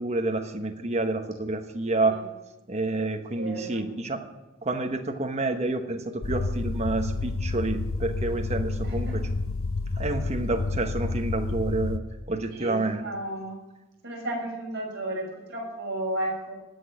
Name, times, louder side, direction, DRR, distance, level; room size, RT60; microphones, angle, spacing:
voice 1, 0.0-2.2 2.7-4.2 4.6-9.2 9.9-12.0 12.3-13.0, right 2 dB, 30° right, 4 dB, 1.1 m, -29 dB
voice 2, 3.3-3.9 8.8-9.1 12.5-13.6 14.0-16.5, right 1 dB, 55° right, -2 dB, 6.1 m, -33 dB
sound 1, 6.2-12.0, left 3 dB, 80° left, 0.7 m, -29 dB
16.0 x 6.2 x 9.9 m, 1.0 s
head